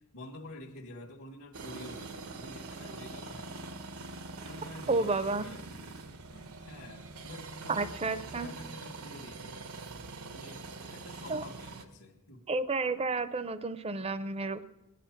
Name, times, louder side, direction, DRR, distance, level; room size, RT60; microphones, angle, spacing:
voice 1, 0.0-3.9 4.3-6.0 6.3-9.7 10.3-12.4, left 1 dB, 75° left, -3 dB, 1.6 m, -49 dB
sound 1, 1.5-11.9, right 3 dB, 90° right, 1.1 m, -44 dB
voice 2, 4.9-5.4 7.7-8.5 11.3-11.4 12.5-14.6, right 3 dB, 30° right, 14 dB, 0.5 m, -31 dB
20.0 x 10.0 x 5.9 m, 0.99 s
head